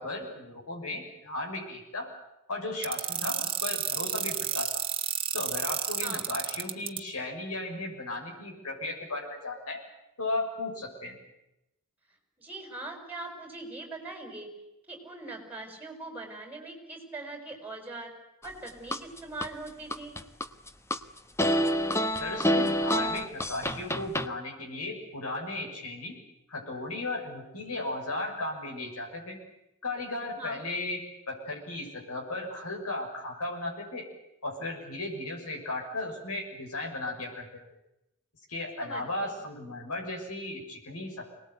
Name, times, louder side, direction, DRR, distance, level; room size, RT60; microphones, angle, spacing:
voice 1, 0.0-2.1 2.5-4.7 5.3-9.8 10.2-11.2 22.2-26.2 26.5-29.4 29.8-31.0 31.3-34.1 34.4-37.5 38.5-41.3, left 2 dB, 80° left, 1 dB, 6.6 m, -35 dB
sound 1, 2.8-7.0, right 9 dB, 25° right, 1.9 m, -30 dB
voice 2, 12.4-14.5 14.9-18.1 18.4-20.1 30.3-30.6 38.8-39.4, right 2 dB, 10° right, 4 dB, 6.4 m, -41 dB
sound 2, 18.4-19.5 19.9-21.0 21.4-24.3, equal, 10° left, 1.0 m, -27 dB
24.5 x 20.0 x 9.4 m, 0.90 s
head